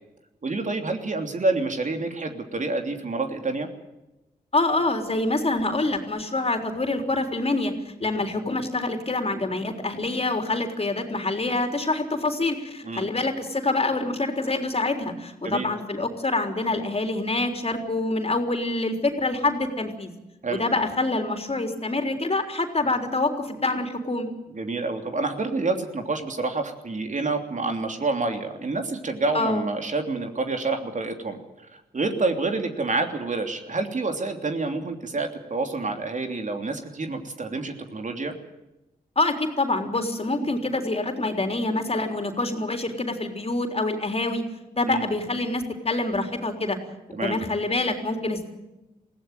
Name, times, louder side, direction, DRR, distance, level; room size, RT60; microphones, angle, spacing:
voice 1, 0.4-3.7 12.8-13.1 15.4-15.7 20.4-20.6 24.5-38.3 44.9-45.0 47.1-47.4, right 3 dB, 50° right, 5 dB, 3.1 m, -28 dB
voice 2, 4.5-7.7 8.0-20.1 20.5-24.3 29.3-29.6 39.2-44.4 44.7-46.8 47.2-48.5, left 2 dB, 35° left, 5 dB, 3.8 m, -26 dB
20.5 x 16.0 x 9.2 m, 0.98 s
cardioid pair, 50°, 17 cm